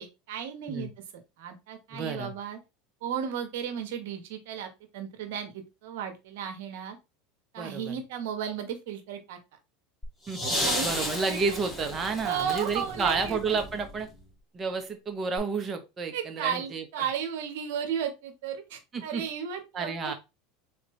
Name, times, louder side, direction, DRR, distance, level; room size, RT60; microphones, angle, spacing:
voice 1, 0.0-2.6 3.0-7.0 7.5-9.4 10.4-11.4 12.2-13.6 16.1-20.1, right 8 dB, 75° right, 7 dB, 1.1 m, -34 dB
voice 2, 1.9-2.3 7.6-8.0 10.3-14.1 14.5-17.1 18.9-19.3 19.7-20.1, right 4 dB, 30° right, 6 dB, 1.0 m, -31 dB
sound 1, 10.0-14.2 15.4-15.5, left 1 dB, 5° left, 2.1 m, -33 dB
3.9 x 3.2 x 3.1 m, 0.26 s
supercardioid pair, 105°, 0 cm